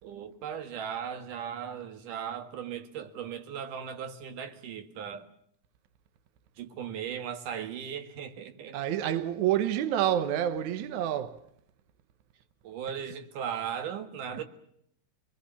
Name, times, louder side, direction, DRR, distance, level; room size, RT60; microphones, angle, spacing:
voice 1, 0.0-5.3 6.6-8.8 12.6-14.4, right 8 dB, 85° right, 3.3 m, -37 dB
voice 2, 8.7-11.4, right 11 dB, 70° right, 2.4 m, -28 dB
26.0 x 20.5 x 7.0 m
omnidirectional pair, 3.6 m